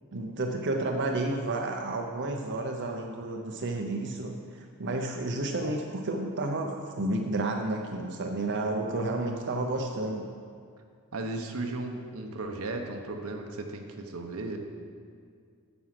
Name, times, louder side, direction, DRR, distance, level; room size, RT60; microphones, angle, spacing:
voice 1, 0.1-10.3, right 2 dB, 55° right, 2 dB, 0.7 m, -31 dB
voice 2, 11.1-14.6, right 2 dB, 85° right, 3 dB, 1.1 m, -35 dB
9.7 x 7.1 x 5.9 m, 2.2 s
head